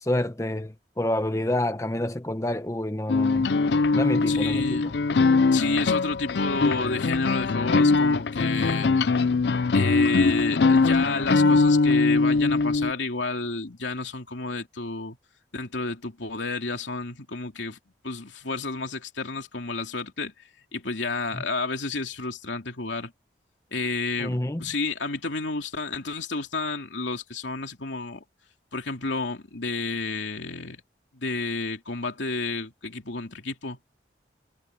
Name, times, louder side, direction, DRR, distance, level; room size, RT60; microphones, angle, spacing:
voice 1, 0.0-3.5 3.9-4.8 21.3-21.4 24.2-24.7, left 1 dB, 15° left, 0.9 m, -28 dB
sound 1, 3.1-12.9, left 3 dB, 65° left, 0.5 m, -22 dB
voice 2, 4.3-4.9 5.5-9.1 9.7-15.2 15.5-17.8 18.0-20.3 20.7-23.1 23.7-28.2 28.7-30.8 31.1-33.8, left 3 dB, 90° left, 3.0 m, -31 dB
head